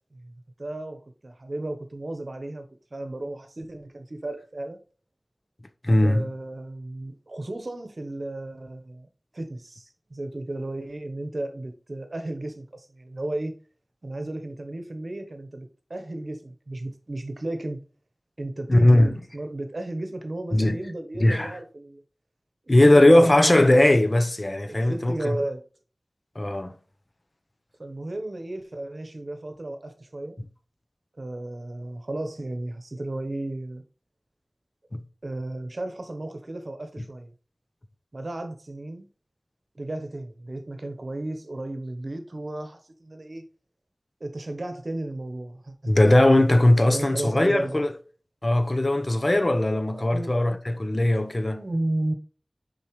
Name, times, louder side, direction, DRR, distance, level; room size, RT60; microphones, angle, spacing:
voice 1, 0.6-4.8 6.0-9.1 9.3-13.5 14.0-17.8 18.4-22.0 22.9-23.3 24.7-25.7 27.8-30.4 31.2-33.8 35.2-37.3 38.1-39.1 39.7-43.4 44.2-45.9 46.9-47.8 49.9-50.3 51.4-52.1, right 1 dB, 65° right, 0.9 m, -34 dB
voice 2, 5.8-6.3 18.7-19.1 20.5-20.8 21.2-21.5 22.7-25.4 26.4-26.7 34.9-35.0 45.9-47.9 48.4-51.6, left 1 dB, 45° left, 0.7 m, -19 dB
6.8 x 5.5 x 3.1 m
wide cardioid pair, 45°, 0 cm